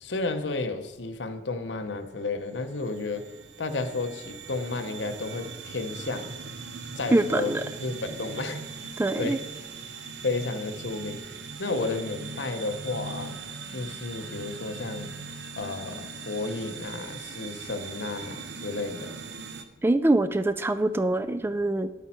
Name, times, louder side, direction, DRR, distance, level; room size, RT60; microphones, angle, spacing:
voice 1, 0.0-3.3 3.6-6.3 7.0-8.6 9.2-9.4 10.2-11.2 11.6-13.4 13.7-15.2 15.6-19.2, left 3 dB, 90° left, 8 dB, 0.8 m, -32 dB
sound 1, 1.7-19.6, right 4 dB, 80° right, 0.8 m, -40 dB
voice 2, 7.1-7.6 9.0-9.4 19.8-22.1, right 2 dB, 15° right, 11 dB, 0.3 m, -24 dB
10.0 x 8.2 x 4.3 m, 1.1 s
head